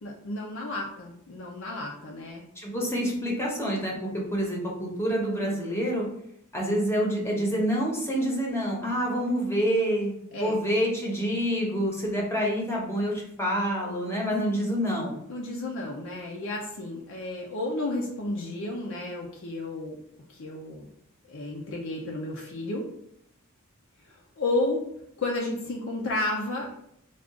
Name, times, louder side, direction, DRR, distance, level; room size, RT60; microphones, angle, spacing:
voice 1, 0.0-2.4 10.3-10.6 15.3-20.0 20.3-20.9 21.3-22.9 24.1-24.9 25.2-26.7, left 2 dB, 65° left, -1 dB, 0.6 m, -32 dB
voice 2, 2.6-6.0 6.5-10.1 10.4-15.1, equal, 10° left, -2 dB, 0.9 m, -27 dB
3.7 x 2.4 x 3.6 m, 0.73 s
head